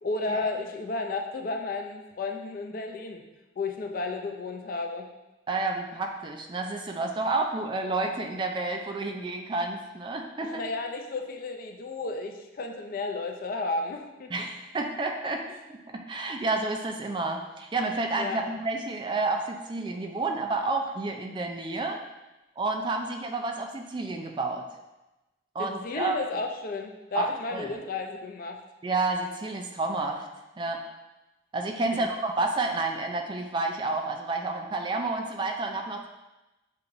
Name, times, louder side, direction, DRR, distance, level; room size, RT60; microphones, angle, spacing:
voice 1, 0.0-3.2 3.6-5.1 10.4-14.5 18.2-18.4 25.6-28.6 31.8-32.1, left 3 dB, 50° left, 3 dB, 0.4 m, -33 dB
voice 2, 5.5-10.6 14.3-15.4 15.9-22.0 22.6-24.6 25.5-26.2 27.1-27.7 28.8-30.3 30.6-30.8 31.5-36.1, right 3 dB, 25° right, 3 dB, 0.3 m, -30 dB
6.6 x 2.9 x 2.5 m, 1.0 s
head